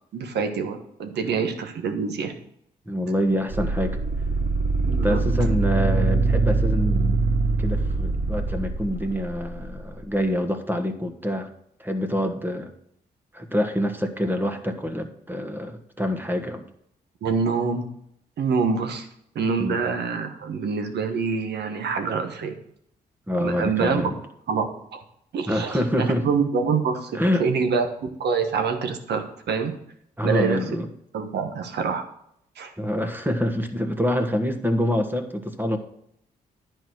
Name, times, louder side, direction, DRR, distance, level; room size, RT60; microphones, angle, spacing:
voice 1, 0.1-2.3 4.8-5.2 17.2-17.9 18.4-19.1 19.3-22.6 23.4-24.1 24.5-25.0 25.3-29.7 30.2-30.6 31.1-32.0 32.6-32.7, right 5 dB, 75° right, 6 dB, 1.3 m, -26 dB
voice 2, 2.9-4.0 5.0-7.3 7.6-11.5 11.8-12.7 13.3-16.6 19.6-19.8 23.3-24.2 25.5-26.3 27.1-27.5 30.2-30.9 32.8-35.8, equal, 10° right, 7 dB, 1.5 m, -26 dB
sound 1, 3.5-9.7, right 3 dB, 45° right, 3.2 m, -23 dB
10.5 x 4.6 x 6.2 m, 0.74 s
supercardioid pair, 55°, 17 cm